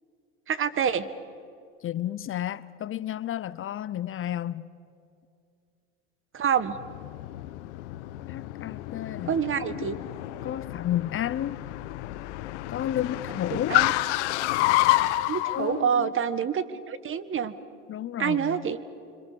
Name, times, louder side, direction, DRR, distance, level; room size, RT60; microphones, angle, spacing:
voice 1, 0.5-1.1 6.3-6.8 9.2-10.0 13.5-13.9 15.3-17.5 18.2-18.8, right 7 dB, 35° right, 1.7 m, -27 dB
voice 2, 1.8-4.7 8.3-9.9 10.4-11.7 12.7-13.8 15.4-16.1 17.9-18.7, left 11 dB, 40° left, 0.8 m, -32 dB
Car, 6.7-15.6, left 17 dB, 80° left, 1.1 m, -29 dB
26.0 x 26.0 x 7.0 m
supercardioid pair, 90°, 34 cm